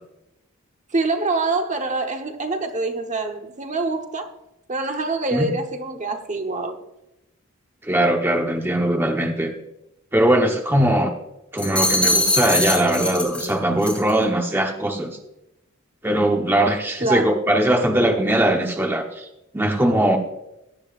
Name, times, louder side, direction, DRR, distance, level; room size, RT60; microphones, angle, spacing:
voice 1, 0.9-4.3 4.7-6.8 17.0-17.3, right 3 dB, 35° right, 1.1 m, -25 dB
voice 2, 7.8-9.5 10.1-11.1 11.5-15.2 16.0-19.3 19.5-20.2, right 1 dB, 10° right, 1.0 m, -20 dB
sound 1, 11.6-13.5 13.8-14.1, left 2 dB, 5° left, 2.9 m, -22 dB
17.0 x 12.0 x 2.5 m
head